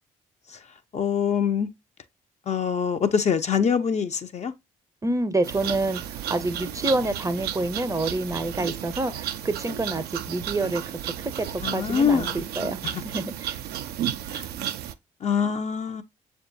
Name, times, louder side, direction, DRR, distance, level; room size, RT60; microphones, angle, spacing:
voice 1, 0.9-1.7 2.5-4.5 11.6-12.4 12.8-13.0 14.3-14.5 15.2-16.0, left 7 dB, 40° left, 0.5 m, -24 dB
voice 2, 5.0-13.6, right 2 dB, 20° right, 0.5 m, -28 dB
sound 1, 5.4-14.9, right 11 dB, 65° right, 0.4 m, -33 dB
6.7 x 2.3 x 2.6 m
hypercardioid pair, 45°, 18 cm